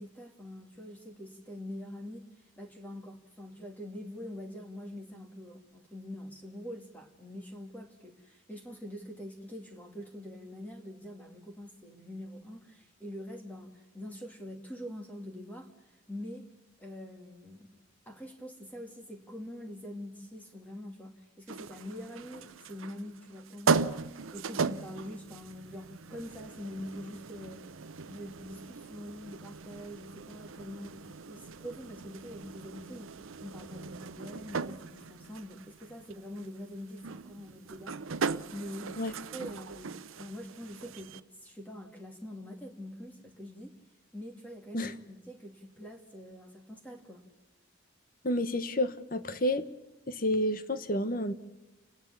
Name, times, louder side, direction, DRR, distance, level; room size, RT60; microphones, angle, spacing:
voice 1, 0.0-2.3 2.6-16.5 16.8-27.6 28.1-31.0 31.3-38.9 39.3-43.7 44.1-47.3, left 1 dB, 10° left, 3 dB, 2.4 m, -44 dB
sound 1, 21.5-41.2, right 5 dB, 85° right, 0.7 m, -38 dB
voice 2, 48.2-49.7 50.1-51.3, left 1 dB, 45° left, 12 dB, 1.1 m, -30 dB
30.0 x 10.5 x 8.4 m, 1.1 s
head